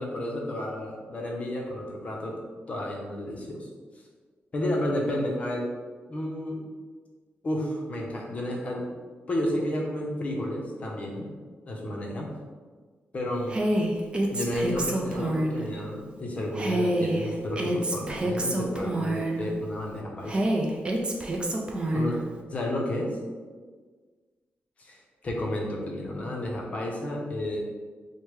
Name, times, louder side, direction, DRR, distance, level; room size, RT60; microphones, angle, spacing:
voice 1, 0.0-2.4 2.7-3.7 4.5-5.7 6.1-6.6 7.4-8.9 9.3-11.3 11.7-12.3 13.1-13.6 14.3-20.5 21.9-22.2 22.5-23.1 24.8-27.6, left 1 dB, 35° left, -1 dB, 0.6 m, -31 dB
Female speech woman speaking, 13.5-15.6 16.6-19.5 20.3-22.2, right 1 dB, 25° right, 0.4 m, -27 dB
4.9 x 2.1 x 3.1 m, 1.5 s
wide cardioid pair, 170°, 4 cm